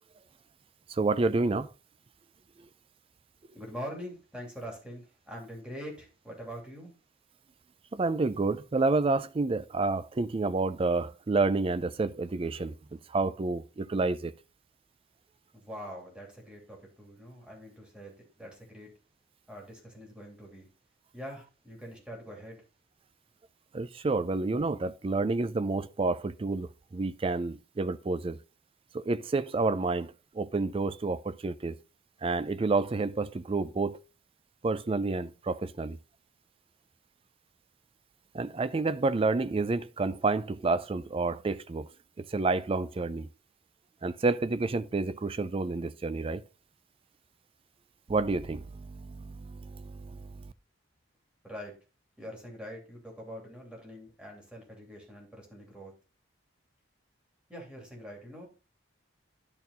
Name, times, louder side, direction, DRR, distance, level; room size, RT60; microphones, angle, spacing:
voice 1, 0.9-1.7 7.9-14.3 23.7-28.4 28.9-31.8 32.2-34.0 34.6-36.0 38.3-41.9 42.2-43.3 44.0-46.4 48.1-50.5, right 3 dB, 30° right, 0.4 m, -29 dB
voice 2, 3.5-6.9 15.5-18.9 19.5-20.7 21.1-22.6 51.4-51.7 52.2-55.9 57.5-58.5, equal, 5° right, 2.7 m, -44 dB
10.5 x 4.3 x 4.0 m
head